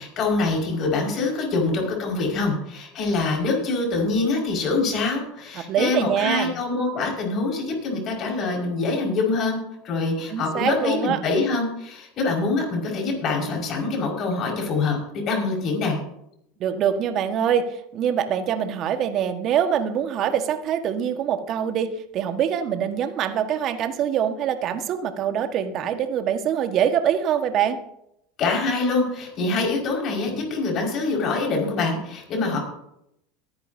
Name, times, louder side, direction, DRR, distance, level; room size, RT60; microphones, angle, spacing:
voice 1, 0.0-9.6 9.8-16.0 28.4-32.6, left 3 dB, 45° left, 0 dB, 5.2 m, -25 dB
voice 2, 5.5-6.5 10.3-11.2 16.6-27.8, right 9 dB, 50° right, 8 dB, 1.5 m, -24 dB
22.5 x 10.5 x 2.7 m, 0.79 s
hypercardioid pair, 95°, 0 cm